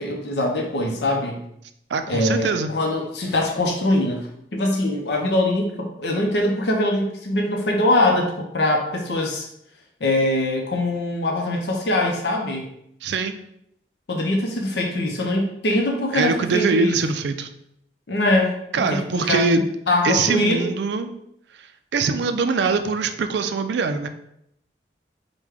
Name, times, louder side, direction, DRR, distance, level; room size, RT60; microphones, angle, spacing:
voice 1, 0.0-1.4 2.1-9.5 10.0-12.7 14.1-17.0 18.1-18.5 18.9-20.7, left 1 dB, 75° left, 1 dB, 0.6 m, -23 dB
voice 2, 1.9-2.7 13.0-13.4 16.1-17.5 18.7-19.7 20.0-21.2 21.6-21.7 21.9-24.1, right 4 dB, 75° right, 9 dB, 0.4 m, -22 dB
4.8 x 2.2 x 3.4 m, 0.76 s
head